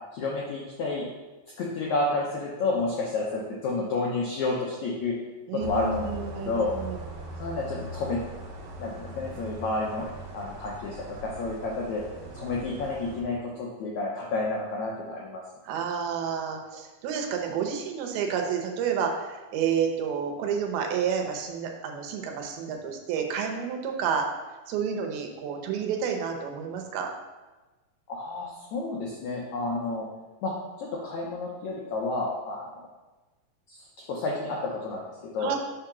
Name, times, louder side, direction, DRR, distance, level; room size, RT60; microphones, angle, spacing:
voice 1, 0.1-1.1 1.6-5.2 5.5-6.8 7.4-8.2 8.8-10.1 10.3-12.0 12.3-15.4 28.1-30.0 30.4-30.5 30.8-32.9 33.7-33.8 34.1-35.5, left 3 dB, 90° left, -3 dB, 1.6 m, -30 dB
voice 2, 5.5-7.0 15.7-24.3 24.7-27.1 35.4-35.6, right 7 dB, 80° right, 3 dB, 2.7 m, -30 dB
sound 1, 5.6-13.2, equal, 60° right, 2.2 m, -40 dB
7.2 x 3.8 x 5.8 m, 1.2 s
omnidirectional pair, 4.5 m